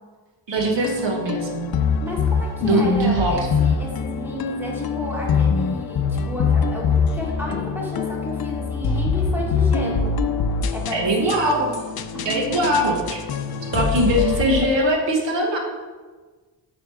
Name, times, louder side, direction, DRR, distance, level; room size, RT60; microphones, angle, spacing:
voice 1, 0.5-1.7 2.6-3.5 10.9-11.7 12.2-13.2 13.7-15.6, right 1 dB, 85° right, 1 dB, 1.6 m, -21 dB
sound 1, 0.6-14.8, left 5 dB, 55° left, 0.5 m, -24 dB
voice 2, 2.0-10.1 10.7-11.8 12.1-12.8, left 1 dB, 5° right, -3 dB, 1.8 m, -32 dB
9.4 x 5.1 x 4.9 m, 1.4 s
wide cardioid pair, 180°, 43 cm